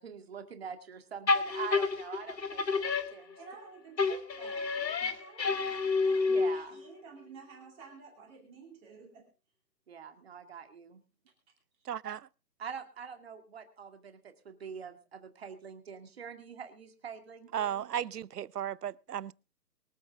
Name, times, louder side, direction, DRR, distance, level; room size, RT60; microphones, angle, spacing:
voice 1, 0.0-3.4 5.0-5.1 6.3-6.8 9.9-11.0 12.6-17.9, right 6 dB, 40° right, 2.2 m, -45 dB
sound 1, 1.3-3.6 4.0-6.8, left 4 dB, 85° left, 2.0 m, -30 dB
voice 2, 3.4-9.3, right 5 dB, 10° right, 2.7 m, -52 dB
voice 3, 11.9-12.3 17.5-19.3, right 10 dB, 70° right, 0.7 m, -35 dB
23.5 x 8.4 x 3.6 m
hypercardioid pair, 170°, 49 cm